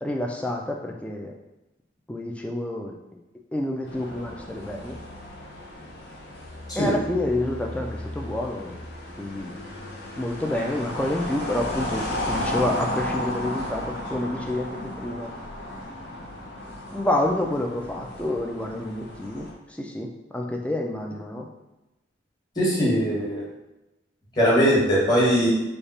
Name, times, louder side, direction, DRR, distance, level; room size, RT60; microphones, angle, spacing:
voice 1, 0.0-1.3 2.1-3.0 3.5-5.0 6.7-8.8 9.2-9.6 10.2-15.3 16.9-21.5, left 1 dB, 5° left, 1 dB, 0.4 m, -28 dB
sound 1, 3.9-19.5, left 1 dB, 60° left, 0.7 m, -34 dB
voice 2, 22.5-23.4 24.3-25.5, equal, 20° left, -6 dB, 1.2 m, -20 dB
3.3 x 2.4 x 4.0 m, 0.96 s
head